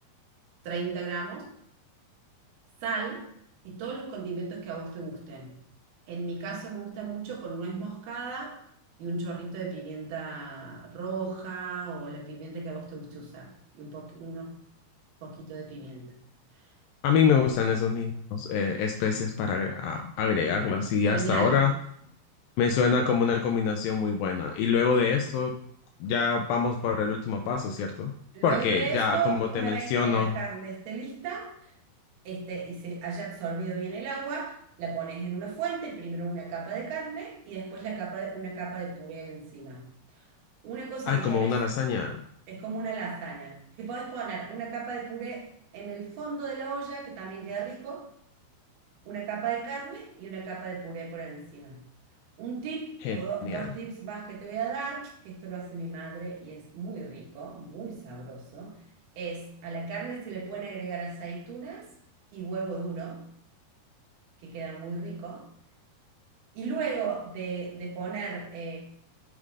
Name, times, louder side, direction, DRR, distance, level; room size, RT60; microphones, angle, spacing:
voice 1, 0.6-1.5 2.8-3.3 3.7-5.6 6.1-8.6 9.0-14.6 15.2-16.2 21.1-21.7 28.3-31.7 32.3-39.9 40.6-41.7 42.5-48.1 49.1-51.8 52.4-58.8 59.2-61.9 62.3-63.3 64.4-65.5 66.6-68.8, right 5 dB, 75° right, -2 dB, 3.7 m, -35 dB
voice 2, 17.0-21.7 22.6-25.5 26.0-28.1 28.4-30.4 41.1-42.2 53.0-53.7, left 6 dB, 85° left, 3 dB, 2.1 m, -26 dB
9.7 x 3.8 x 4.9 m, 0.69 s
omnidirectional pair, 4.6 m